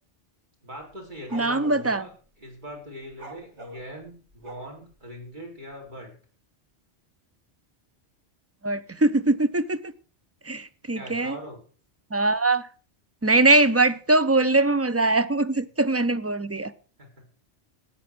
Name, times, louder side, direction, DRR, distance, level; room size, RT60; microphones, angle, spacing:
voice 1, 0.6-2.1 2.4-6.1 10.9-11.6 17.0-17.2, equal, 45° right, 4.2 m, -41 dB
sound 1, 0.8-1.9 3.1-4.9, right 1 dB, 85° right, 2.4 m, -43 dB
voice 2, 1.3-2.0 8.6-9.8 10.5-11.3 12.1-12.6 13.2-16.7, right 2 dB, 20° right, 0.4 m, -22 dB
13.0 x 8.9 x 6.0 m
omnidirectional pair, 1.2 m